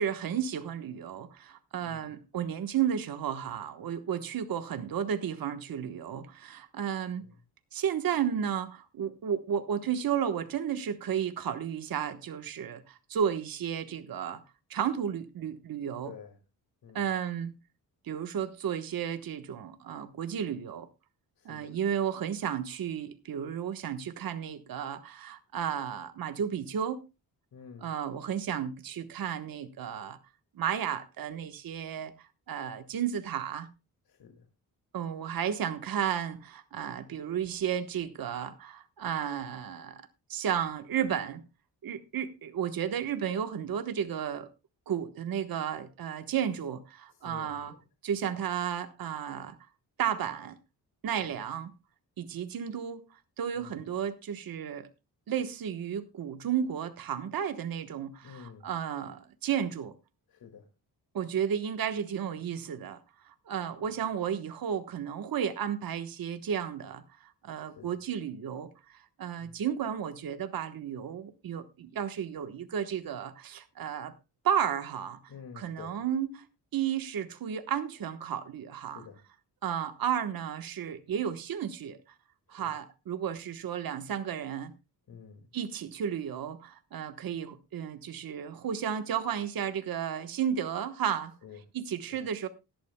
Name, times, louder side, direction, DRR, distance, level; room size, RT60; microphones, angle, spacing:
voice 1, 0.0-7.3 7.7-14.4 14.7-16.1 16.9-17.6 18.0-20.9 21.4-27.0 27.8-30.2 30.5-33.7 34.9-41.4 41.8-44.5 44.9-47.7 48.0-49.6 50.0-50.6 51.0-51.7 52.2-53.0 53.4-54.9 55.3-60.0 61.1-63.0 63.2-74.1 74.4-75.2 75.5-76.5 76.7-79.1 79.6-82.0 82.5-84.7 85.5-91.3 91.7-92.5, right 8 dB, 60° right, 1.2 m, -33 dB
voice 2, 1.8-2.1 7.2-7.3 16.0-16.4 16.8-17.0 21.4-21.8 27.5-27.9 34.1-34.5 47.2-47.8 51.2-51.3 53.5-53.8 58.2-58.7 60.3-60.7 67.7-68.0 69.4-69.6 75.3-76.0 78.9-79.2 82.5-82.7 85.1-85.5 91.4-91.6 92.1-92.2, left 7 dB, 65° left, 2.2 m, -49 dB
18.0 x 12.0 x 2.2 m
cardioid pair, 115°, 39 cm